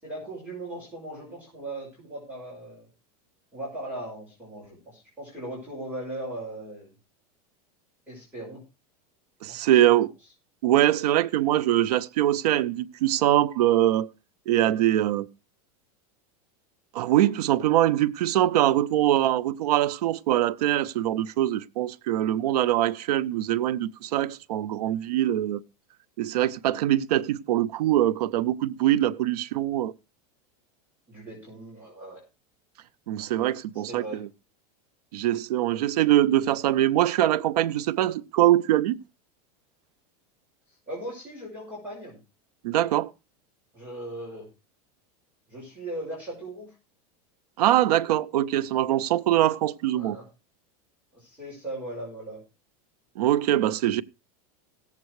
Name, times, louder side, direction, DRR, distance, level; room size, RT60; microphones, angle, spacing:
voice 1, 0.0-2.9 3.5-6.9 8.1-8.6 9.5-10.0 31.1-32.2 33.2-33.3 33.7-34.2 40.9-42.2 43.7-44.4 45.5-46.7 49.9-50.3 51.1-52.4, right 1 dB, 10° right, 6.0 m, -38 dB
voice 2, 9.4-10.1 10.6-14.1 14.5-15.3 16.9-25.6 26.2-29.9 33.1-34.3 35.1-39.0 42.6-43.1 47.6-50.2 53.2-54.0, right 13 dB, 90° right, 0.8 m, -23 dB
17.0 x 7.5 x 4.7 m
supercardioid pair, 175°, 20 cm